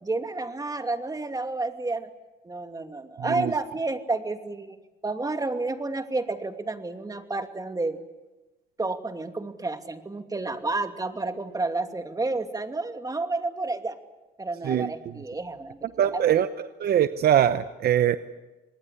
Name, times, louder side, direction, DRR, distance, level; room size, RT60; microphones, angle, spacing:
voice 1, 0.0-2.1 2.4-4.8 5.0-8.0 8.8-14.0 14.4-15.8 16.1-16.2, right 3 dB, 20° right, 2.7 m, -30 dB
voice 2, 16.0-18.2, right 10 dB, 60° right, 0.9 m, -22 dB
26.5 x 20.0 x 8.2 m
supercardioid pair, 75°, 18 cm